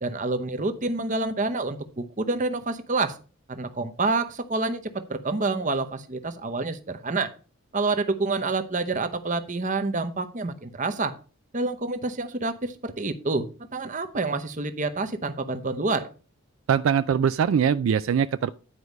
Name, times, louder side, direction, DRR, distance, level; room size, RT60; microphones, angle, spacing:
voice 1, 0.0-3.2 3.5-7.3 7.7-11.1 11.5-13.5 13.7-16.1, right 3 dB, 35° right, 0.8 m, -28 dB
voice 2, 16.7-18.5, right 7 dB, 70° right, 0.3 m, -22 dB
9.9 x 4.7 x 5.3 m
head